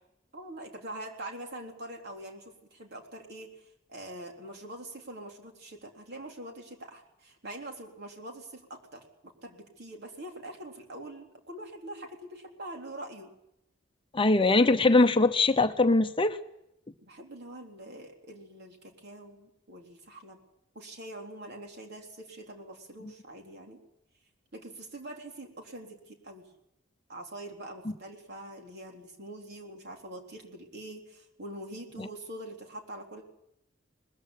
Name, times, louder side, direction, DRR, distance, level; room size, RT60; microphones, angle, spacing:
voice 1, 0.3-3.6 3.9-13.3 17.0-20.4 20.7-23.8 24.5-26.4 27.1-33.2, right 1 dB, 55° right, 2 dB, 3.7 m, -44 dB
voice 2, 14.1-16.4 32.0-32.1, left 2 dB, 25° left, 9 dB, 0.8 m, -22 dB
21.0 x 14.5 x 9.9 m, 0.81 s
head